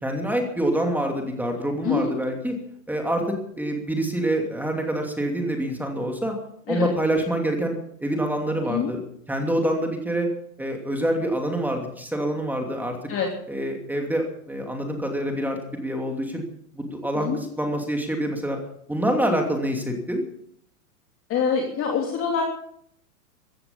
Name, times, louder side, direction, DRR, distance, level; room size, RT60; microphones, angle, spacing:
voice 1, 0.0-2.5 2.9-6.3 6.7-9.0 9.3-10.3 10.6-13.0 13.5-16.4 16.7-18.6 18.9-20.2, right 1 dB, 5° right, 2 dB, 2.8 m, -26 dB
voice 2, 21.3-22.4, left 6 dB, 30° left, 0 dB, 3.1 m, -25 dB
15.5 x 15.5 x 5.5 m, 0.68 s
hypercardioid pair, 115°, 44 cm